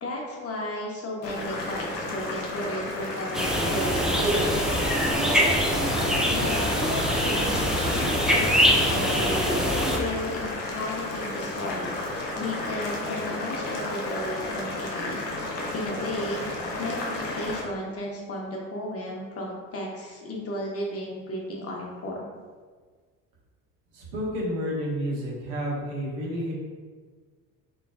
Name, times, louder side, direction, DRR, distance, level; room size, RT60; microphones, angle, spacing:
voice 1, 0.0-4.9 6.0-22.3, left 1 dB, 30° left, -2 dB, 1.0 m, -34 dB
Boiling, 1.2-17.6, left 2 dB, 80° left, 0.9 m, -33 dB
sound 1, 3.3-10.0, equal, ahead, 0.4 m, -23 dB
voice 2, 23.9-26.5, equal, 55° right, -4 dB, 1.3 m, -30 dB
6.3 x 3.1 x 2.4 m, 1.5 s
figure-of-eight pair, 60°, 50 cm